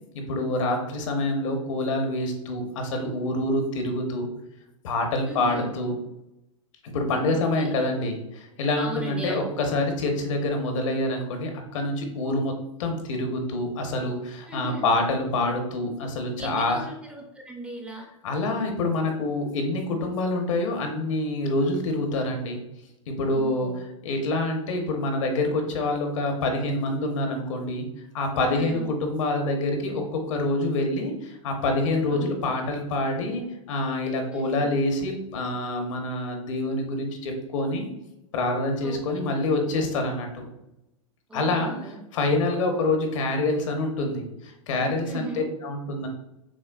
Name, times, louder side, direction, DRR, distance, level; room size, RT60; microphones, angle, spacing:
voice 1, 0.1-4.3 4.8-5.9 6.8-12.5 12.8-16.8 18.2-22.6 23.1-23.7 24.0-27.9 28.1-37.9 38.3-40.4 41.3-46.1, left 2 dB, 65° left, 4 dB, 1.0 m, -26 dB
voice 2, 5.3-5.7 7.3-7.9 8.8-9.4 14.5-14.9 16.4-18.1 23.3-23.8 28.5-28.9 32.1-32.5 34.3-34.7 38.8-39.0 41.3-42.0 45.0-45.5, right 2 dB, 5° right, 1 dB, 0.5 m, -38 dB
6.1 x 2.2 x 2.3 m, 0.88 s
hypercardioid pair, 140°, 17 cm